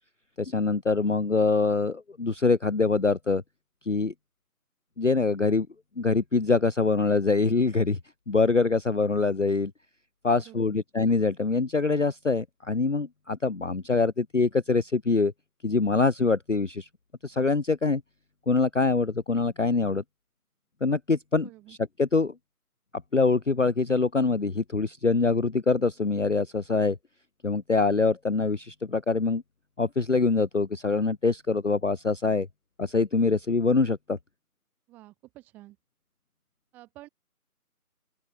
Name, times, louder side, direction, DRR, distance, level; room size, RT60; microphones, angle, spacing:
voice 1, 0.4-3.4 3.9-4.1 5.0-5.7 6.0-8.0 8.3-9.7 10.2-15.3 15.6-16.9 17.2-18.0 18.5-20.0 20.8-22.3 23.1-27.0 27.4-29.4 29.8-32.5 32.8-34.2, left 4 dB, 55° left, 0.5 m, -24 dB
voice 2, 10.3-10.8 21.4-21.8 34.9-35.8 36.7-37.1, right 17 dB, 5° right, 6.2 m, -50 dB
open air
figure-of-eight pair, 165°, 46 cm